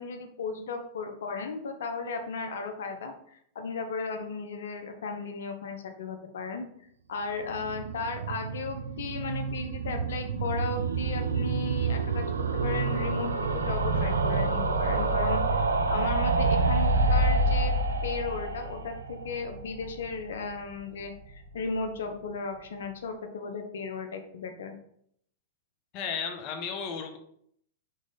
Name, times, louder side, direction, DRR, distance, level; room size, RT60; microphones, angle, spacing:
voice 1, 0.0-6.6 7.1-17.8 18.0-24.7, left 4 dB, 75° left, 5 dB, 0.8 m, -35 dB
sound 1, 7.4-20.5 20.8-20.9 21.1-21.2 21.4-21.5, right 3 dB, 90° right, 0.5 m, -28 dB
voice 2, 25.9-27.2, left 6 dB, 45° left, 5 dB, 1.0 m, -34 dB
4.0 x 3.1 x 4.0 m, 0.69 s
hypercardioid pair, 110°, 0 cm